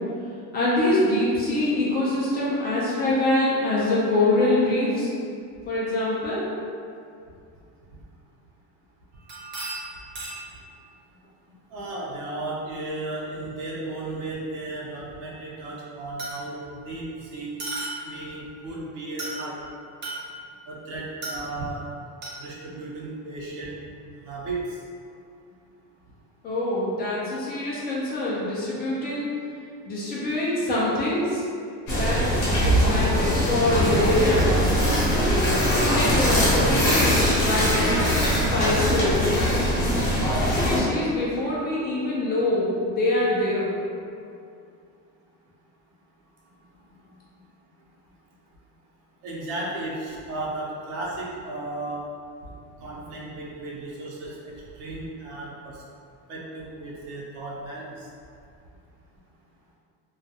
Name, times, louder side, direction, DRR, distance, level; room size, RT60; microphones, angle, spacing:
voice 1, 0.5-5.1 5.7-6.4 26.4-29.3 29.8-31.4 31.9-32.3 32.6-34.5 35.7-39.2 40.5-43.8, left 1 dB, 30° left, -7 dB, 0.3 m, -24 dB
sound 1, 9.1-10.6 14.0-14.1 16.2-16.7 17.6-18.3 19.2-19.6 20.0-20.6 21.2-21.8 22.2-22.4, right 2 dB, 30° right, 0.6 m, -35 dB
voice 2, 11.7-17.5 18.0-19.6 20.7-21.8 22.4-23.8 24.2-24.6 49.2-52.0 52.8-55.8 56.3-58.1, right 2 dB, 75° right, -4 dB, 0.7 m, -34 dB
sound 2, 31.9-40.8, equal, 45° left, 0.8 m, -21 dB
2.3 x 2.2 x 2.7 m, 2.4 s
cardioid pair, 160°, 36 cm